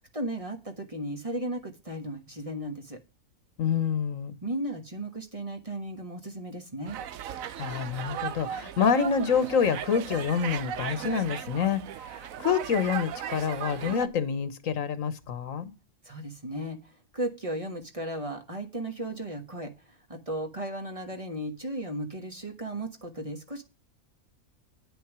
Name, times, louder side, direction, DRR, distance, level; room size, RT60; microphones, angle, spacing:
voice 1, 0.1-3.0 4.4-7.0 16.0-23.6, right 1 dB, 25° right, 4 dB, 1.4 m, -35 dB
voice 2, 3.6-4.4 7.6-15.7, left 7 dB, 75° left, 13 dB, 1.4 m, -27 dB
sound 1, 6.9-14.1, right 10 dB, 80° right, 1.1 m, -36 dB
9.4 x 5.8 x 6.0 m, 0.29 s
omnidirectional pair, 1.4 m